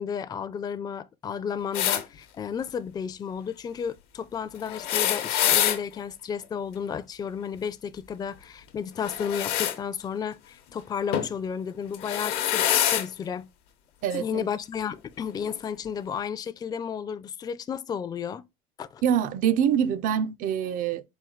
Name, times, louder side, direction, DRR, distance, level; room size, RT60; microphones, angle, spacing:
voice 1, 0.0-13.5 14.1-18.4 18.8-19.0, left 7 dB, 25° left, 0.3 m, -33 dB
sound 1, 1.7-2.0 4.7-5.8 9.0-9.8 11.1-11.3 11.9-13.1 14.1-14.2 15.4-15.5, left 11 dB, 85° left, 0.8 m, -25 dB
voice 2, 14.0-14.5 19.0-21.0, right 8 dB, 60° right, 0.4 m, -25 dB
4.3 x 2.3 x 3.8 m
cardioid pair, 110°, 16 cm